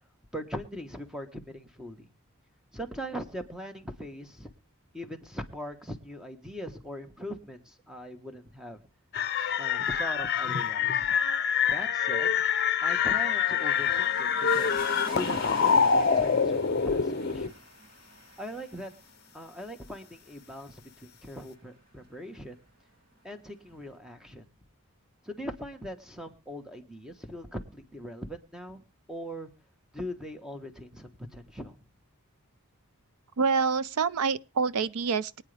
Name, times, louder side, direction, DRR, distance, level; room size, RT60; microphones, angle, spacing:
voice 1, 0.3-2.1 2.7-4.5 4.9-8.8 9.6-11.1 11.7-12.4 12.8-14.8 15.1-17.5 18.4-18.9 19.3-22.6 23.2-24.4 25.2-29.5 29.9-31.8, equal, 5° right, 1.2 m, -41 dB
sound 1, 9.1-17.5, left 6 dB, 45° left, 0.7 m, -26 dB
sound 2, 12.9-22.0 23.2-23.3, right 1 dB, 45° right, 7.9 m, -47 dB
voice 2, 33.4-35.4, right 5 dB, 85° right, 0.6 m, -27 dB
24.0 x 9.1 x 3.4 m
head